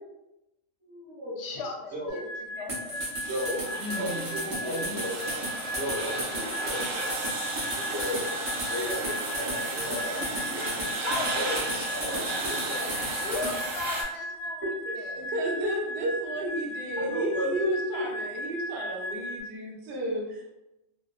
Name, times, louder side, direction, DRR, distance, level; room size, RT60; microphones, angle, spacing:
voice 1, 0.8-1.4 1.9-2.3 3.2-3.6 3.9-5.2 5.7-7.2 7.9-8.2 8.7-11.0 11.3-11.6 11.9-12.8 14.6-14.7 17.0-17.5 17.9-18.0, equal, 10° right, -10 dB, 0.9 m, -34 dB
voice 2, 1.4-2.0 2.5-3.0 10.9-11.9 12.2-12.3 12.6-14.7 14.9-15.3, left 3 dB, 65° left, 0 dB, 0.7 m, -37 dB
sound 1, 2.1-19.4, equal, 20° left, 0.6 m, -37 dB
sound 2, 2.7-13.6, equal, 45° right, 0.4 m, -36 dB
sound 3, 3.2-14.0, right 2 dB, 90° right, 1.0 m, -34 dB
voice 3, 3.7-5.0 15.2-20.5, right 1 dB, 65° right, -1 dB, 0.8 m, -32 dB
2.5 x 2.1 x 2.3 m, 0.93 s
omnidirectional pair, 1.4 m